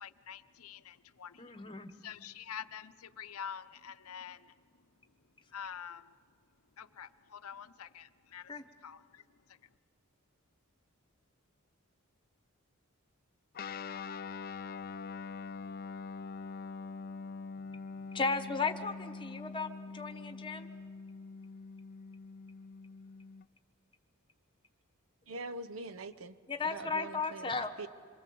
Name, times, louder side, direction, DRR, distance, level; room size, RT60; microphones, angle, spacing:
voice 1, 0.0-1.3 2.0-4.4 5.5-6.0 6.8-8.5 8.8-9.0, left 8 dB, 80° left, 12 dB, 0.7 m, -46 dB
voice 2, 1.4-1.9 8.5-8.6 18.1-20.7 26.5-27.7, left 4 dB, 20° left, 8 dB, 1.2 m, -35 dB
Guitar, 13.5-23.5, left 4 dB, 45° left, 0.5 m, -44 dB
voice 3, 25.3-27.5 27.8-27.9, right 2 dB, 70° right, 12 dB, 0.9 m, -43 dB
27.0 x 23.0 x 7.7 m, 2.2 s
head